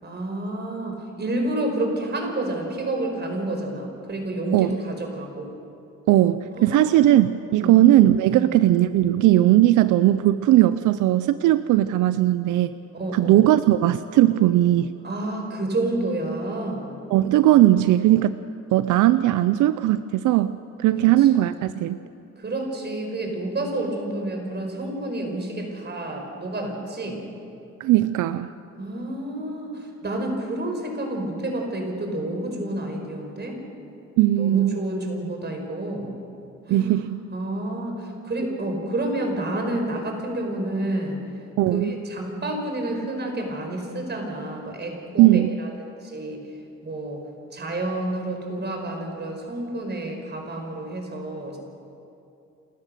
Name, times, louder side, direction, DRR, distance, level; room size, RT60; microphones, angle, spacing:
voice 1, 0.0-5.5 6.5-7.0 7.6-8.0 8.3-8.5 12.9-13.5 15.0-16.9 21.0-21.3 22.4-27.2 28.7-33.6 34.4-36.1 36.7-41.2 41.7-45.7 46.0-46.4 46.8-47.2 47.5-51.6, right 1 dB, 35° right, 3 dB, 5.1 m, -29 dB
voice 2, 6.1-12.7 13.1-14.9 17.1-18.4 18.7-22.0 27.8-28.5 34.2-34.8 36.7-37.2 41.6-41.9 45.2-45.6, right 14 dB, 85° right, 13 dB, 0.6 m, -18 dB
28.5 x 13.5 x 6.6 m, 2.7 s
cardioid pair, 90°, 30 cm